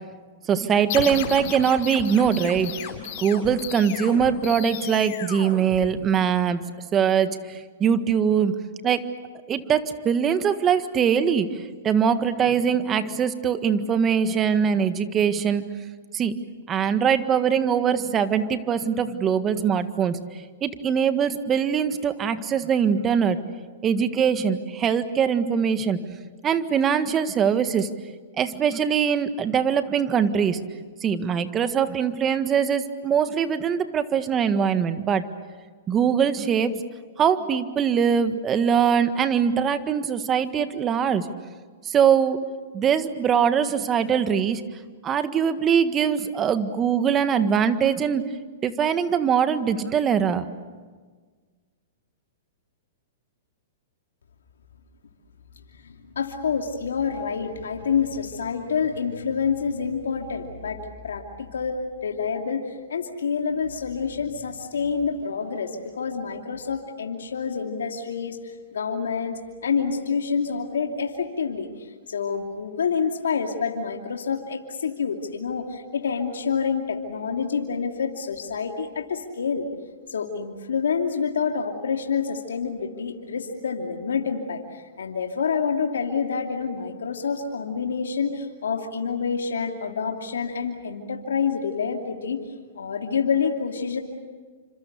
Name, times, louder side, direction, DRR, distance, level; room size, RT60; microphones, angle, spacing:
voice 1, 0.5-2.9 3.2-6.6 6.9-8.6 8.8-9.1 9.5-15.7 16.1-16.4 16.7-20.2 20.6-23.4 23.8-26.0 26.4-27.9 28.4-30.6 31.0-35.3 35.9-36.8 37.2-41.3 41.8-42.4 42.7-44.6 45.0-48.2 48.6-50.5, right 7 dB, 25° right, 10 dB, 1.6 m, -22 dB
sound 1, 0.9-6.3, left 8 dB, 50° left, 4.3 m, -34 dB
voice 2, 55.8-71.7 72.1-79.7 80.1-92.4 92.8-94.0, left 6 dB, 85° left, 3 dB, 2.7 m, -27 dB
28.5 x 26.5 x 6.8 m, 1.5 s
hypercardioid pair, 120°, 0 cm